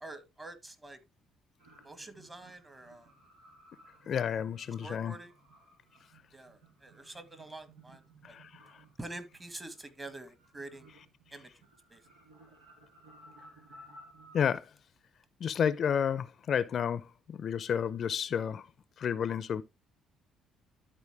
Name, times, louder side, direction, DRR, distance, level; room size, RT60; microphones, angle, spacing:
voice 1, 0.0-1.0 1.8-3.1 4.8-5.3 6.3-8.0 8.3-8.4 9.0-10.9 11.3-11.5 11.9-12.0, right 2 dB, 20° right, 1.9 m, -46 dB
sound 1, 1.6-14.6, right 1 dB, 85° right, 2.8 m, -58 dB
voice 2, 4.1-5.2 8.2-8.6 14.3-14.7 15.4-18.7 19.0-19.6, left 8 dB, 55° left, 0.6 m, -31 dB
12.0 x 4.3 x 3.4 m
supercardioid pair, 70°, 0 cm